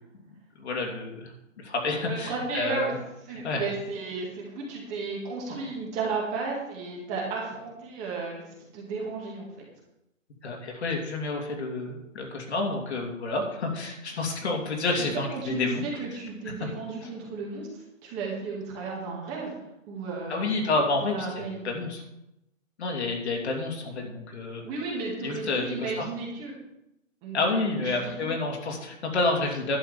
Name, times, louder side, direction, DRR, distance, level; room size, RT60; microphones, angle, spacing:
voice 1, 0.6-3.0 3.4-3.7 10.4-15.9 20.3-22.0 22.8-24.6 25.2-26.0 27.3-29.8, left 3 dB, 55° left, 1 dB, 2.9 m, -29 dB
voice 2, 2.0-2.9 3.3-9.5 15.0-19.5 19.9-20.5 21.0-21.8 24.6-26.6 27.2-28.0, right 4 dB, 15° right, -2 dB, 2.0 m, -34 dB
11.5 x 5.7 x 7.3 m, 0.86 s
hypercardioid pair, 160°, 40 cm